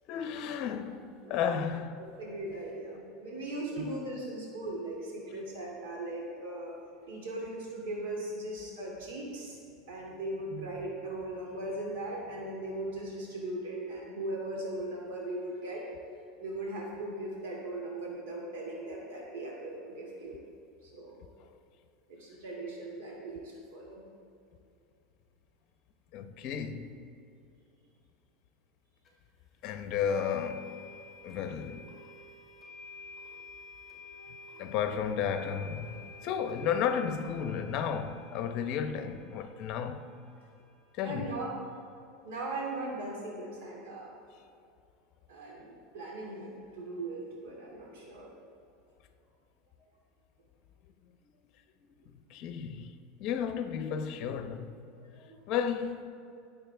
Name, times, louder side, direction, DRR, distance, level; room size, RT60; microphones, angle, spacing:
voice 1, 0.1-2.0 3.8-3.9 10.5-10.7 21.4-21.5 26.1-27.0 29.6-30.8 31.2-31.9 34.3-40.1 40.9-41.4 51.0-51.1 52.1-54.7 55.5-56.1, left 7 dB, 45° left, 0.8 m, -33 dB
voice 2, 2.2-6.7 7.1-9.6 9.9-15.9 16.4-20.4 20.8-21.2 22.1-24.0 34.2-34.3 41.0-41.5 42.2-44.1 45.3-48.3 54.9-55.4, right 2 dB, 85° right, 2.5 m, -39 dB
sound 1, 29.0-29.1 30.0-41.6, left 3 dB, 15° left, 2.8 m, -51 dB
20.5 x 7.2 x 3.5 m
supercardioid pair, 155°, 0 cm